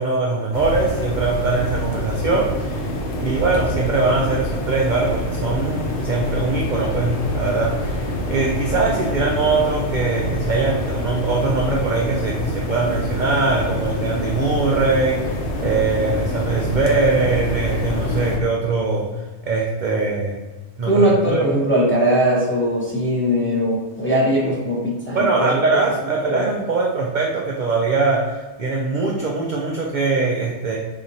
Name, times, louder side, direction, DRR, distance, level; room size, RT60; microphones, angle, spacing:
voice 1, 0.0-2.8 3.2-15.2 15.6-19.1 19.5-20.3 20.8-21.4 24.4-24.6 25.1-30.8, right 3 dB, 65° right, -2 dB, 0.4 m, -22 dB
sound 1, 0.5-18.4, left 1 dB, 70° left, 1.0 m, -26 dB
voice 2, 20.9-24.8 25.1-25.5 26.2-26.4, equal, 15° left, -6 dB, 0.5 m, -19 dB
4.2 x 2.8 x 2.6 m, 1.2 s
omnidirectional pair, 1.3 m